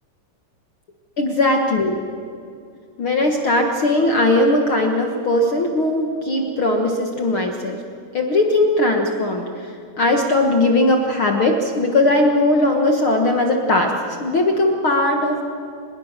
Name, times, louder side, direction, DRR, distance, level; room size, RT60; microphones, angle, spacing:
voice 1, 1.2-1.9 3.0-7.8 8.1-9.7 10.0-13.9 14.2-15.4, left 2 dB, 60° left, 3 dB, 1.4 m, -19 dB
25.5 x 21.5 x 6.7 m, 2.4 s
omnidirectional pair, 4.5 m